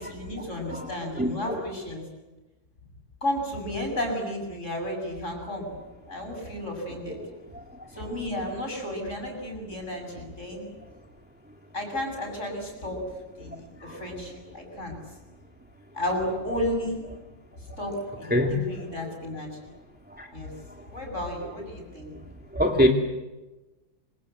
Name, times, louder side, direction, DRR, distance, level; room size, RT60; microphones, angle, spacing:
voice 1, 0.0-2.0 3.2-5.7 6.1-7.2 7.9-10.7 11.7-13.0 13.4-14.9 15.9-17.0 17.8-19.7 20.3-20.5 20.9-22.1, left 1 dB, 35° left, 3 dB, 7.6 m, -33 dB
voice 2, 1.2-1.6 13.8-13.9 18.3-18.5 20.1-20.3 22.5-22.9, equal, 5° right, 1 dB, 2.3 m, -22 dB
26.5 x 26.0 x 8.0 m, 1.1 s
omnidirectional pair, 2.2 m